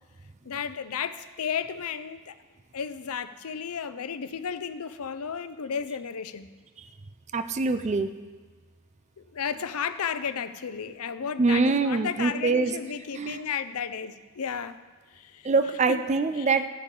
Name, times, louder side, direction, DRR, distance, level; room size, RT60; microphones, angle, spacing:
voice 1, 0.4-2.4 2.7-6.5 9.2-14.8 15.1-15.5 15.9-16.0 16.3-16.5, left 7 dB, 80° left, 13 dB, 0.5 m, -33 dB
voice 2, 7.3-8.1 11.4-12.7 13.2-13.4 15.4-16.7, right 4 dB, 30° right, 10 dB, 0.4 m, -24 dB
14.0 x 9.7 x 3.8 m, 1.4 s
head